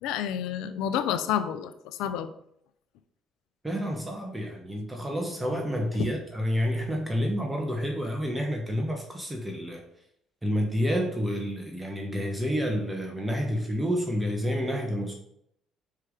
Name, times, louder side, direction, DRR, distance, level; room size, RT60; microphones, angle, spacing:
voice 1, 0.0-2.3 6.0-6.1, left 9 dB, 80° left, 11 dB, 0.6 m, -29 dB
voice 2, 3.6-9.8 10.4-15.1, equal, 15° right, 2 dB, 1.1 m, -29 dB
5.7 x 4.8 x 5.0 m, 0.74 s
supercardioid pair, 75°, 0 cm